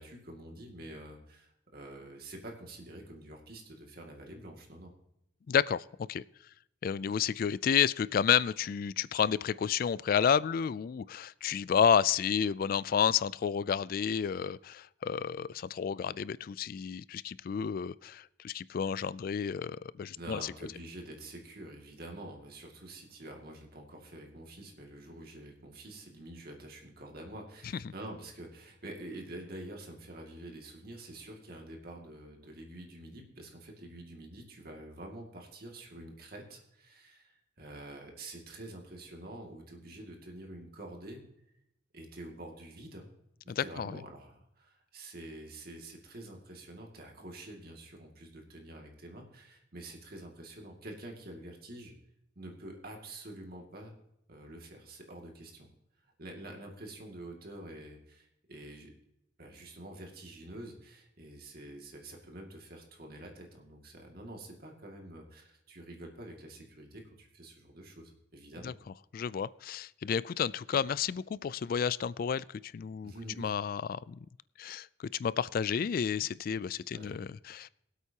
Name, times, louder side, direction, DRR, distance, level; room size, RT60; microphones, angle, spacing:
voice 1, 0.0-4.9 20.2-41.2 41.9-43.1 43.4-51.9 52.4-53.9 54.3-55.7 56.2-58.9 59.4-68.7 73.0-73.5 76.9-77.2, right 1 dB, 55° right, 2.2 m, -47 dB
voice 2, 5.5-6.2 6.8-20.5 43.5-44.0 68.6-68.7 69.1-74.3 74.6-77.7, left 7 dB, 50° left, 0.3 m, -31 dB
23.0 x 8.2 x 2.9 m
head